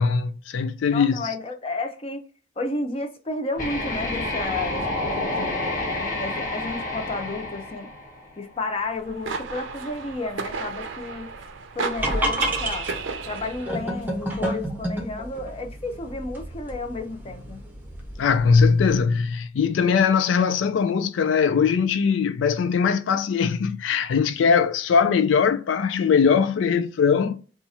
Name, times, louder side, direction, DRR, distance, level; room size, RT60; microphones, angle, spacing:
voice 1, 0.0-1.3 18.2-27.4, left 6 dB, 80° left, 0.3 m, -21 dB
voice 2, 0.9-2.3 2.6-7.9 8.4-11.3 11.7-12.9 13.3-17.7, left 2 dB, 30° left, 0.6 m, -32 dB
sound 1, 3.6-8.5, left 2 dB, 50° left, 1.2 m, -29 dB
sound 2, 8.8-13.9, right 5 dB, 85° right, 0.5 m, -33 dB
sound 3, 12.0-19.0, right 1 dB, 10° right, 0.7 m, -30 dB
2.9 x 2.4 x 4.1 m
head